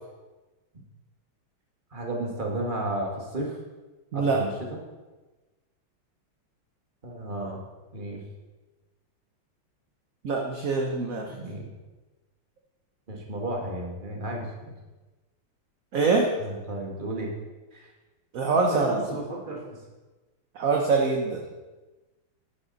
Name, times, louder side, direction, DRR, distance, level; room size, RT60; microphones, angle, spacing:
voice 1, 1.9-3.6 4.1-4.8 7.0-7.6 7.9-8.2 11.3-11.7 13.1-14.7 16.4-17.3 17.7-17.9 18.7-19.6, right 1 dB, 25° right, 0 dB, 1.8 m, -33 dB
voice 2, 10.2-11.3 15.9-16.3 18.3-19.0 20.5-21.4, right 4 dB, 50° right, 1 dB, 1.2 m, -24 dB
11.0 x 10.0 x 4.1 m, 1.2 s
omnidirectional pair, 2.2 m